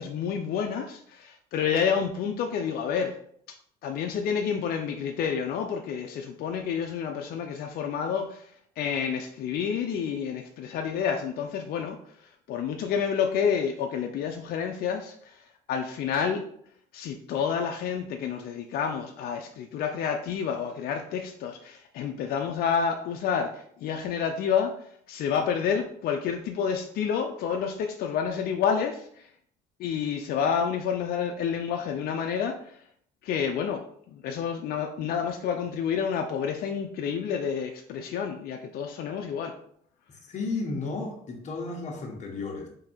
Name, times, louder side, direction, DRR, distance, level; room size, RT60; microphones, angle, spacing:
voice 1, 0.0-3.1 3.8-8.5 8.8-12.0 12.5-15.4 15.7-16.4 16.9-24.7 25.1-29.3 29.8-32.8 33.2-33.8 34.1-39.5, left 7 dB, 65° left, 4 dB, 0.5 m, -29 dB
voice 2, 40.2-42.7, left 3 dB, 45° left, 1 dB, 1.2 m, -33 dB
3.8 x 2.7 x 4.3 m, 0.65 s
cardioid pair, 110°, 17 cm